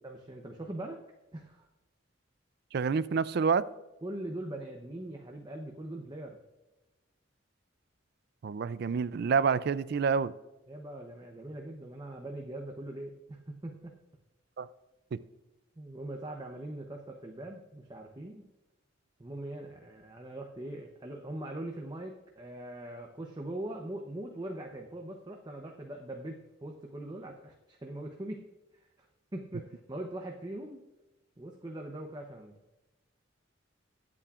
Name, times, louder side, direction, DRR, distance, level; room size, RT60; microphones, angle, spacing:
voice 1, 0.0-1.0 1.3-1.7 4.0-6.4 10.7-13.9 15.8-18.5 19.2-28.5 28.7-29.1 29.3-30.8 31.4-32.6, right 1 dB, 20° right, 1 dB, 0.7 m, -41 dB
voice 2, 2.7-3.7 8.4-10.3 14.6-14.7 15.1-15.2, right 5 dB, 55° right, 17 dB, 0.4 m, -28 dB
22.0 x 8.5 x 2.4 m, 1.0 s
head